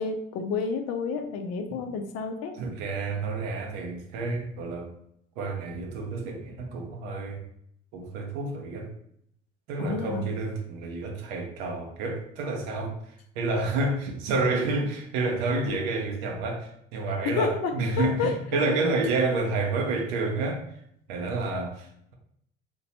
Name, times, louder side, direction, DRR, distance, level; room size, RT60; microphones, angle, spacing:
voice 1, 0.0-2.5 9.8-10.3 17.2-17.7 18.0-18.6, left 5 dB, 55° left, 6 dB, 0.6 m, -29 dB
voice 2, 2.5-4.9 5.4-7.4 7.9-8.9 9.7-20.6 21.1-22.1, right 3 dB, 65° right, 2 dB, 0.9 m, -29 dB
4.3 x 3.0 x 2.9 m, 0.72 s
figure-of-eight pair, 50°, 31 cm